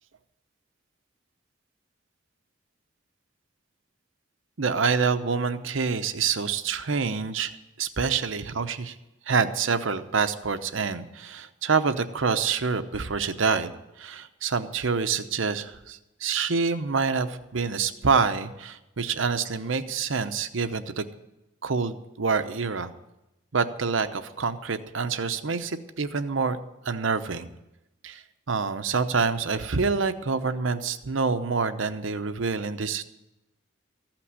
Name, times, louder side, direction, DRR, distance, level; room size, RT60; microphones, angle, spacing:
voice 1, 4.6-8.9 9.3-13.7 14.0-21.1 21.6-22.9 23.5-26.6 26.8-27.5 28.0-33.0, right 5 dB, 75° right, 10 dB, 0.8 m, -27 dB
14.5 x 6.0 x 9.7 m, 0.93 s
head